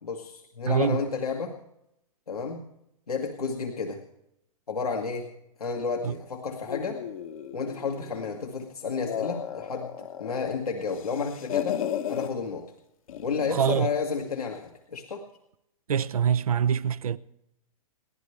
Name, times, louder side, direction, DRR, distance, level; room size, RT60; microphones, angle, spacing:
voice 1, 0.0-1.6 2.3-2.6 3.1-4.0 4.7-5.3 5.6-7.0 7.5-9.9 10.2-11.8 12.1-12.7 13.2-15.2, left 5 dB, 90° left, 1.9 m, -31 dB
voice 2, 0.7-1.0 6.0-6.1 13.5-13.9 15.9-17.2, right 8 dB, 75° right, 0.8 m, -24 dB
sound 1, 6.7-8.4 8.9-10.5 10.9-12.3 13.1-13.9, left 10 dB, 70° left, 1.4 m, -34 dB
30.0 x 11.5 x 3.4 m
hypercardioid pair, 120°, 19 cm